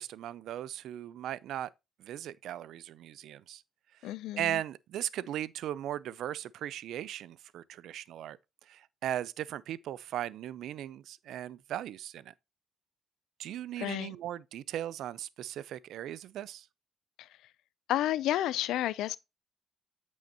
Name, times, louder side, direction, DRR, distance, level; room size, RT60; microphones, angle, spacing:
voice 1, 0.0-1.7 2.0-3.6 4.0-8.4 8.7-12.3 13.4-16.7, right 11 dB, 80° right, 0.4 m, -38 dB
voice 2, 4.0-4.6 13.8-14.1 17.2-17.3 17.9-19.2, left 13 dB, 85° left, 0.4 m, -31 dB
8.6 x 6.4 x 2.8 m
cardioid pair, 90°, 0 cm